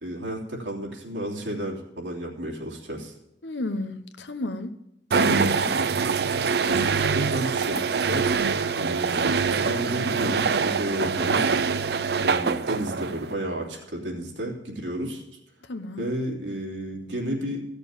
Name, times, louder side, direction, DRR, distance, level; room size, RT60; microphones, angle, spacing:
voice 1, 0.0-3.1 6.6-8.3 8.8-11.5 12.2-15.2 16.0-17.7, equal, 90° right, -2 dB, 3.1 m, -32 dB
voice 2, 3.4-4.7 5.1-5.7 15.6-16.0, left 2 dB, 80° left, 10 dB, 0.9 m, -32 dB
sound 1, 5.1-13.3, right 5 dB, 60° right, 0.5 m, -24 dB
15.0 x 6.8 x 7.3 m, 0.83 s
head